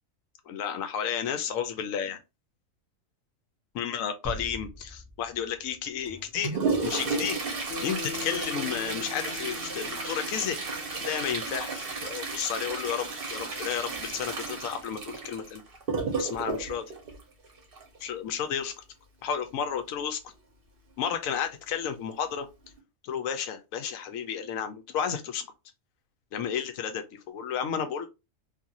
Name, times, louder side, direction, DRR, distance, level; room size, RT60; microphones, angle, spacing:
voice 1, 0.5-2.2 3.7-7.4 7.8-10.6 11.0-15.6 16.2-16.9 18.0-18.7 19.2-20.3 21.0-22.5 23.0-25.5 26.3-28.1, left 8 dB, 85° left, 1.0 m, -32 dB
sound 1, 4.2-6.8, equal, 20° left, 0.5 m, -43 dB
Toilet flush, 6.0-18.0 19.9-20.0 20.3-20.4 21.2-21.3 22.0-22.2 22.6-22.8, right 4 dB, 50° right, 0.9 m, -33 dB
Bass guitar, 7.7-12.1, left 5 dB, 60° left, 0.7 m, -42 dB
2.6 x 2.4 x 2.8 m
omnidirectional pair, 1.4 m